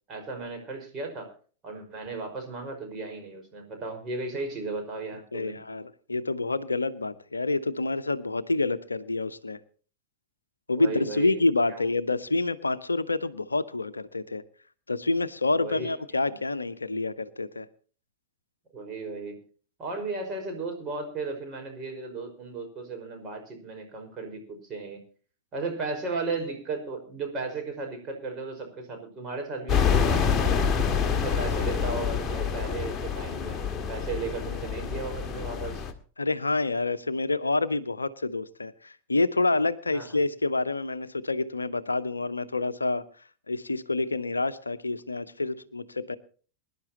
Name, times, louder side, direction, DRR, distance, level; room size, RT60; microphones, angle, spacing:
voice 1, 0.1-1.3 1.6-5.6 10.8-11.4 11.7-11.8 15.6-15.9 16.2-16.3 18.7-19.4 19.8-25.0 25.5-33.6 33.9-35.9 39.9-40.1, right 3 dB, 30° right, 3 dB, 5.2 m, -35 dB
voice 2, 5.3-9.6 10.7-14.4 14.9-17.7 36.2-43.1 43.5-46.2, left 2 dB, 80° left, 13 dB, 0.7 m, -28 dB
sound 1, 29.7-35.9, left 6 dB, 20° left, 1.8 m, -27 dB
23.0 x 11.0 x 2.9 m, 0.40 s
figure-of-eight pair, 90°, 0 cm